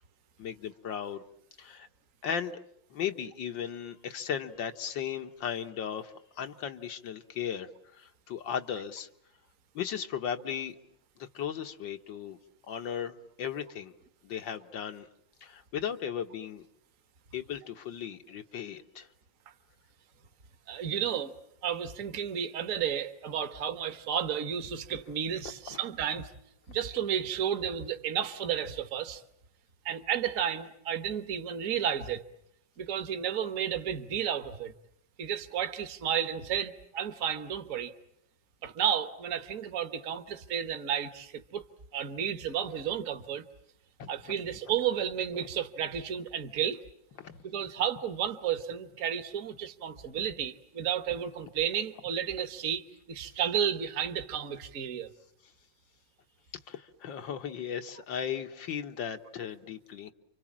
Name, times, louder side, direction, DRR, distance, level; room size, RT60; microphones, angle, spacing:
voice 1, 0.4-1.2 1.6-1.9 2.2-2.6 2.9-9.1 9.7-10.8 11.2-12.4 12.7-13.9 14.2-15.1 15.4-16.6 17.3-19.1 25.7-25.8 44.0-44.1 47.2-47.4 56.7-60.1, left 8 dB, 85° left, 2.0 m, -36 dB
voice 2, 20.7-21.3 21.6-26.3 26.7-29.2 29.8-32.2 32.8-34.8 35.2-37.9 38.6-41.6 41.9-43.4 44.1-46.8 47.4-55.1, right 9 dB, 50° right, 1.5 m, -32 dB
30.0 x 25.0 x 7.4 m
omnidirectional pair, 2.0 m